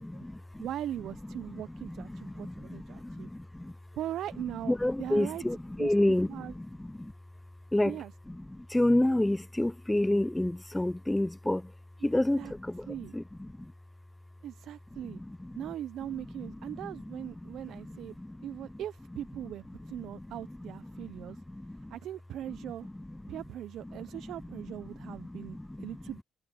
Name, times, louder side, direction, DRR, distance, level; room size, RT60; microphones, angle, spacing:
voice 1, 0.0-0.7 1.5-3.8 4.7-7.1 7.7-8.0 8.3-11.7 12.0-13.7 15.0-15.7 16.1-18.5 20.0-20.3 20.6-22.0 22.5-23.4 23.8-24.7 25.0-25.9, left 1 dB, 10° left, 0.5 m, -31 dB
voice 2, 0.6-3.3 4.0-5.4 5.8-5.9 6.3-6.5 7.8-8.1 12.0-12.1 12.4-12.5 12.9-13.1 14.4-15.2 15.6-18.2 18.4-21.4 21.9-22.9 23.3-26.2, right 11 dB, 75° right, 0.5 m, -40 dB
cardioid pair, 90°, 0 cm